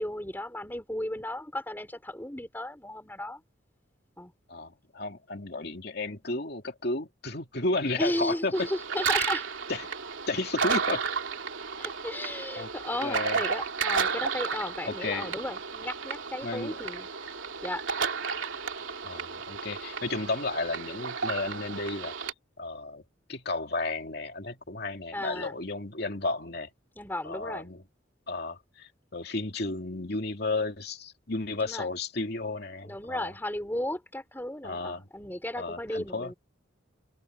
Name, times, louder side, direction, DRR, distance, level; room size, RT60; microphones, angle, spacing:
voice 1, 0.0-3.4 4.2-4.3 8.0-9.5 11.8-17.1 17.6-17.8 25.1-25.6 27.0-27.7 31.6-31.9 32.8-36.3, left 1 dB, 10° left, 4.3 m, -34 dB
voice 2, 4.5-8.7 9.7-10.0 10.3-11.0 12.6-12.7 13.0-13.4 14.9-15.3 16.4-16.8 19.0-22.1 22.6-23.0 23.3-26.7 27.2-27.8 28.3-33.3 34.6-35.1 35.6-36.3, left 2 dB, 55° left, 2.7 m, -33 dB
sound 1, 8.5-22.3, right 5 dB, 85° right, 2.8 m, -32 dB
open air
head